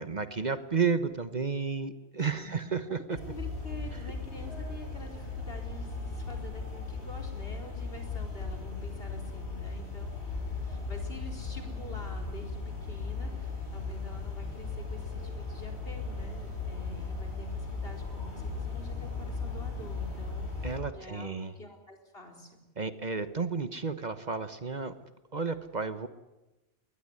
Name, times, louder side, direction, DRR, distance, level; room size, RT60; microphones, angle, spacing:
voice 1, 0.0-3.0 20.6-21.5 22.8-24.9 25.3-26.1, right 5 dB, 45° right, 11 dB, 1.3 m, -32 dB
voice 2, 2.3-2.8 3.1-20.7 20.9-22.6, left 1 dB, 65° left, 3 dB, 4.7 m, -48 dB
sound 1, 3.1-20.8, left 4 dB, 90° left, 7.1 m, -37 dB
21.5 x 20.0 x 9.7 m, 1.0 s
omnidirectional pair, 1.1 m